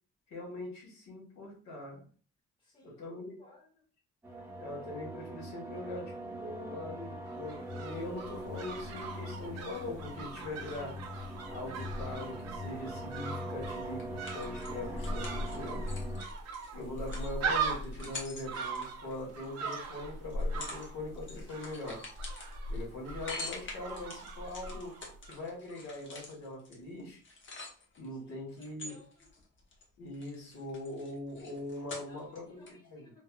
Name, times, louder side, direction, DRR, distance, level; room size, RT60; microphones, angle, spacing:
voice 1, 0.3-2.0 2.8-3.4 4.6-11.0 11.5-15.8 16.7-22.0 22.7-25.0 25.2-27.2 28.0-29.0 30.0-33.1, left 2 dB, 65° left, 1.2 m, -42 dB
voice 2, 2.6-3.0 3.4-3.8 28.6-29.3 32.1-33.2, left 2 dB, 15° left, 1.2 m, -60 dB
sound 1, 4.2-16.2, equal, 5° right, 0.8 m, -42 dB
sound 2, 7.3-25.4 25.7-25.8, right 3 dB, 55° right, 0.6 m, -40 dB
sound 3, 14.0-19.8 20.3-20.9 21.1-28.1 28.6-29.9 30.1-32.4 32.7-32.8, left 3 dB, 40° left, 0.9 m, -46 dB
3.3 x 2.0 x 2.3 m
cardioid pair, 90°, 30 cm